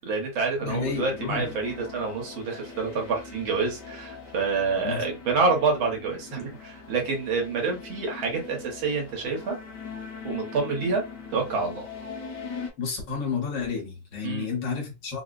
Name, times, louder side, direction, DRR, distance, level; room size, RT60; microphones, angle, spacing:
voice 1, 0.0-9.6 10.2-11.0 11.3-11.8 14.2-14.5, right 4 dB, 80° right, 1.9 m, -27 dB
voice 2, 0.6-1.5 4.7-5.1 12.8-15.2, left 5 dB, 65° left, 1.7 m, -31 dB
sound 1, 0.6-12.7, left 5 dB, 30° left, 0.8 m, -41 dB
4.2 x 2.1 x 2.4 m
omnidirectional pair, 2.2 m